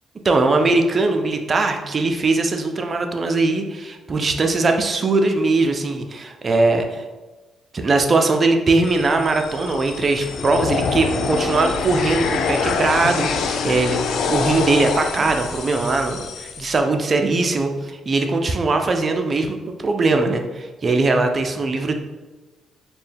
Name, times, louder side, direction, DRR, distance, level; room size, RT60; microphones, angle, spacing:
voice 1, 0.2-7.0 7.7-21.9, right 3 dB, 40° right, 4 dB, 0.5 m, -20 dB
sound 1, 8.8-16.8, left 5 dB, 75° left, 0.3 m, -25 dB
4.2 x 2.2 x 3.4 m, 1.2 s
supercardioid pair, 65°, 0 cm